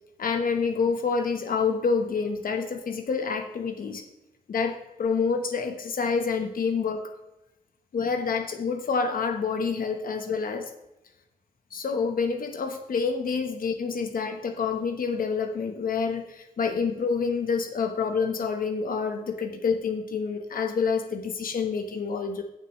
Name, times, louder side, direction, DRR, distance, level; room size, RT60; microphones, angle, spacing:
voice 1, 0.2-4.0 4.5-7.0 7.9-10.7 11.7-22.4, left 5 dB, 60° left, 5 dB, 1.1 m, -27 dB
17.0 x 6.3 x 3.1 m, 0.97 s
wide cardioid pair, 110°, 16 cm